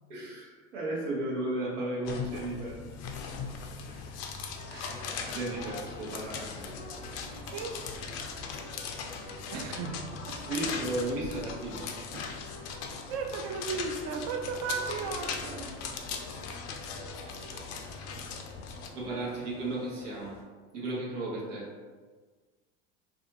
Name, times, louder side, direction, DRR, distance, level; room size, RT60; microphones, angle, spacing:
voice 1, 0.1-2.8 3.9-4.1 4.7-6.6 8.5-8.7 9.6-9.9 10.5-11.9 16.1-16.4 17.2-17.6 18.9-20.3 20.7-21.7, right 2 dB, 85° right, -4 dB, 0.9 m, -35 dB
sound 1, 2.0-18.9, left 5 dB, 45° left, 0.4 m, -39 dB
sound 2, 4.5-20.4, left 2 dB, 85° left, 0.8 m, -47 dB
voice 2, 7.5-7.8 9.5-10.4 12.1-12.3 13.1-15.7, right 5 dB, 45° right, 3 dB, 0.4 m, -35 dB
2.7 x 2.3 x 2.7 m, 1.4 s
hypercardioid pair, 95°, 36 cm